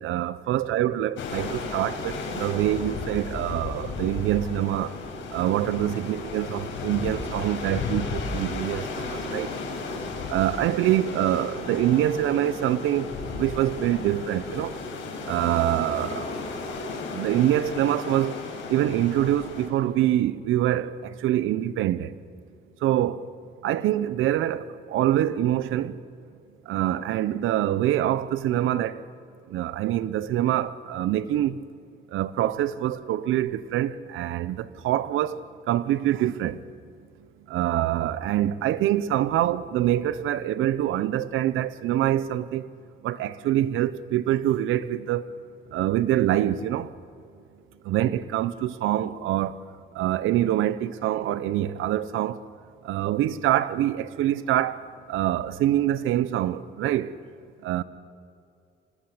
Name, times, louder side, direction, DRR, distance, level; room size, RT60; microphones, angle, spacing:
voice 1, 0.0-4.9 5.3-9.5 10.3-14.8 15.2-16.3 17.1-18.4 18.7-22.1 22.8-23.2 23.6-26.0 26.7-29.0 29.5-31.6 32.1-35.4 35.7-36.6 37.5-42.7 43.0-45.3 45.7-46.9 47.8-49.6 49.9-52.4 52.8-54.8 55.1-57.1 57.6-57.8, right 12 dB, 85° right, 0.9 m, -25 dB
sound 1, 1.2-19.7, left 3 dB, 75° left, 5.2 m, -34 dB
25.5 x 19.0 x 8.0 m
cardioid pair, 90°, 20 cm